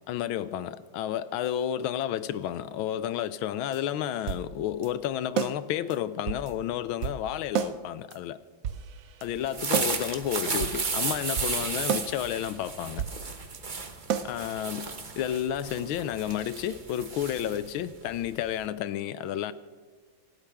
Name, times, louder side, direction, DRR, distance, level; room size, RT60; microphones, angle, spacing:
voice 1, 0.1-8.4 9.2-13.0 14.2-14.9 15.2-19.5, left 11 dB, 75° left, 1.4 m, -31 dB
sound 1, 3.7-3.8 4.1-4.5 4.8-4.9 5.4-5.6 5.9-6.0 6.3-6.5 7.0-7.2 7.6-7.8 8.1-8.2 8.6-9.3 9.7-9.9 10.3-10.4 10.6-10.9 11.4-11.5 11.9-12.1 12.4-12.5 12.9-13.2 13.5-13.6 14.1-14.3, right 8 dB, 70° right, 0.8 m, -30 dB
sound 2, 9.4-18.7, right 4 dB, 35° right, 0.8 m, -34 dB
26.5 x 12.5 x 3.5 m
omnidirectional pair, 2.4 m